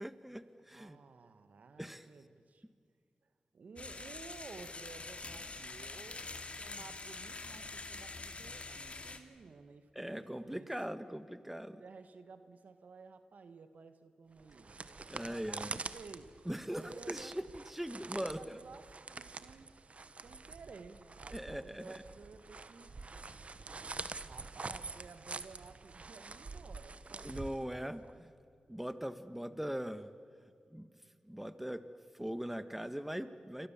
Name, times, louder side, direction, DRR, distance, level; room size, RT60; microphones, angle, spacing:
voice 1, 0.0-1.0 1.8-2.1 9.9-11.8 15.1-15.8 16.4-18.6 21.3-22.0 27.2-28.3 28.7-30.1 30.7-30.9 31.3-31.8 32.1-33.7, equal, 5° right, 11 dB, 1.7 m, -41 dB
voice 2, 0.7-2.6 3.5-6.3 6.6-10.7 11.7-14.7 15.2-16.3 16.7-17.4 17.9-19.7 20.2-22.9 24.2-28.0, right 4 dB, 75° right, 10 dB, 1.6 m, -54 dB
sound 1, 3.8-9.2, left 3 dB, 50° left, 2.4 m, -45 dB
sound 2, 14.4-28.1, right 3 dB, 55° right, 1.2 m, -46 dB
29.0 x 24.0 x 7.4 m, 2.3 s
cardioid pair, 40°, 3 cm